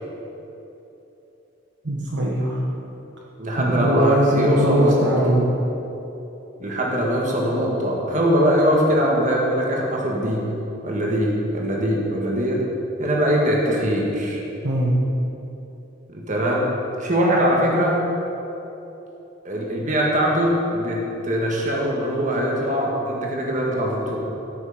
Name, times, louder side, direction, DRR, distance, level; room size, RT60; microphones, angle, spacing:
voice 1, 1.8-2.6 3.6-5.5 14.6-14.9, equal, 65° right, -4 dB, 1.2 m, -20 dB
voice 2, 3.4-5.4 6.6-10.5 10.8-12.6 13.0-14.4 16.1-18.0 19.4-24.2, equal, 40° right, -2 dB, 1.6 m, -22 dB
13.0 x 6.3 x 5.0 m, 3.0 s
head